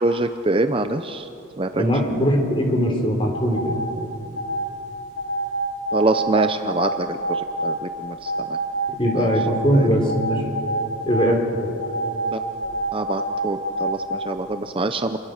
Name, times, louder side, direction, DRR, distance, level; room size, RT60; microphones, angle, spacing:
voice 1, 0.0-1.3 1.6-1.8 5.9-8.6 9.1-9.3 9.7-9.9 12.3-12.4 12.9-15.2, right 2 dB, 25° right, 8 dB, 0.6 m, -25 dB
voice 2, 1.7-3.8 9.0-10.6 11.1-11.4, equal, 25° left, 3 dB, 3.5 m, -20 dB
sound 1, 3.3-3.9 4.4-4.7 5.2-7.8 8.3-9.6 10.1-11.3 11.8-14.2, right 2 dB, 65° left, 7.4 m, -26 dB
27.5 x 22.5 x 6.6 m, 2.8 s
head